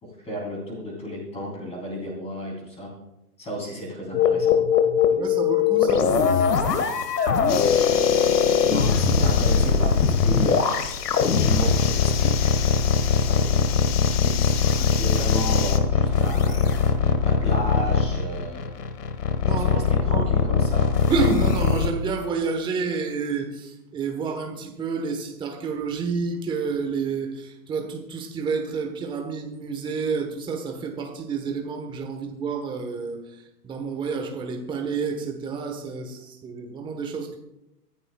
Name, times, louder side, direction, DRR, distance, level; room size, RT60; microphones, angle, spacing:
voice 1, 0.0-2.9 3.4-4.6 8.6-12.6 13.2-13.7 14.2-16.8 17.2-18.8 19.4-20.9, equal, 15° left, -2 dB, 3.5 m, -33 dB
sound 1, 4.1-21.9, left 6 dB, 75° left, 1.8 m, -21 dB
voice 2, 5.1-6.1 19.4-20.3 21.1-37.4, right 4 dB, 10° right, 3 dB, 1.3 m, -29 dB
sound 2, 7.5-15.8, left 9 dB, 40° left, 1.1 m, -32 dB
24.0 x 11.0 x 2.4 m, 0.90 s
hypercardioid pair, 145°, 48 cm